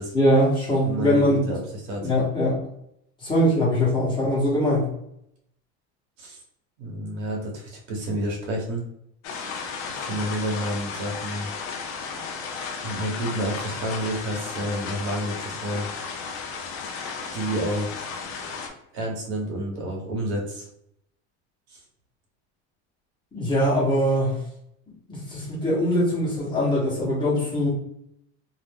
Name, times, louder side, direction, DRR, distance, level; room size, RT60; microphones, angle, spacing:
voice 1, 0.1-1.4 2.0-2.6 3.2-4.9 23.3-24.4 25.1-27.7, equal, 15° left, -7 dB, 1.0 m, -22 dB
voice 2, 0.8-2.0 6.2-6.4 6.8-8.8 9.9-11.5 12.8-15.9 17.3-18.1 18.9-20.7 21.7-21.8, right 1 dB, 80° right, 0 dB, 1.0 m, -29 dB
sound 1, 9.2-18.7, left 5 dB, 40° left, 0.4 m, -34 dB
2.4 x 2.0 x 3.4 m, 0.75 s
cardioid pair, 155°, 34 cm